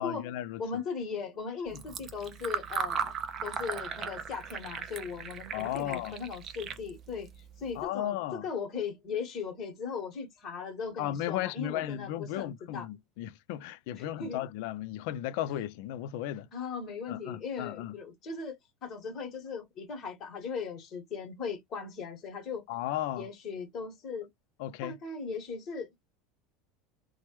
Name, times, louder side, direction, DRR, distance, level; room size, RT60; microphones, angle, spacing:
voice 1, 0.0-0.8 1.7-1.8 5.5-6.2 7.8-8.4 11.0-16.5 17.1-18.0 22.7-23.3 24.6-25.0, left 12 dB, 55° left, 0.3 m, -35 dB
voice 2, 0.6-3.1 3.4-7.3 7.6-12.9 14.0-14.4 16.5-22.6 23.1-24.3 24.8-25.9, left 5 dB, 25° left, 1.2 m, -38 dB
Fill (with liquid), 1.7-7.8, right 7 dB, 25° right, 0.4 m, -38 dB
3.0 x 2.2 x 3.0 m
supercardioid pair, 175°, 0 cm